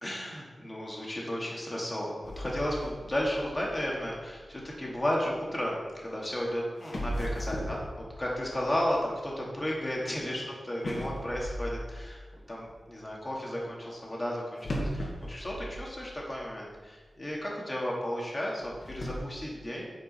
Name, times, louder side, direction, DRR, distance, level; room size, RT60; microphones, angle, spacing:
voice 1, 0.0-10.4 10.7-19.9, left 1 dB, 20° left, -4 dB, 2.6 m, -33 dB
sound 1, 2.2-5.4 6.3-6.4 6.8-10.2 10.8-12.7 14.6-16.4 16.7-16.8 17.4-17.5 18.5-19.2, equal, 65° left, 2.1 m, -38 dB
9.4 x 5.9 x 5.8 m, 1.4 s
wide cardioid pair, 110°, 0 cm